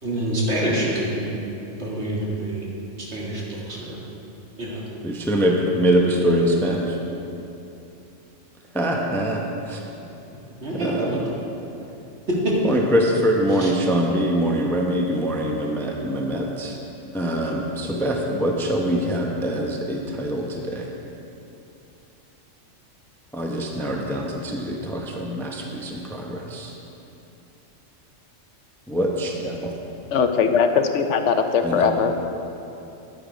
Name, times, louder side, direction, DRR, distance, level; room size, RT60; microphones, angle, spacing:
voice 1, 0.0-1.3 1.8-2.7 3.1-4.0 4.6-4.8 10.6-11.2 12.3-12.5 13.6-13.7, right 1 dB, 60° right, -5 dB, 2.3 m, -26 dB
voice 2, 5.0-7.0 8.7-9.4 9.7-9.8 10.7-11.2 12.6-16.8 17.1-20.9 23.3-26.7 28.9-29.7 31.6-31.9, equal, ahead, 0 dB, 0.7 m, -23 dB
voice 3, 30.1-32.1, left 6 dB, 70° left, 7 dB, 0.9 m, -20 dB
10.5 x 8.8 x 5.1 m, 2.9 s
omnidirectional pair, 1.3 m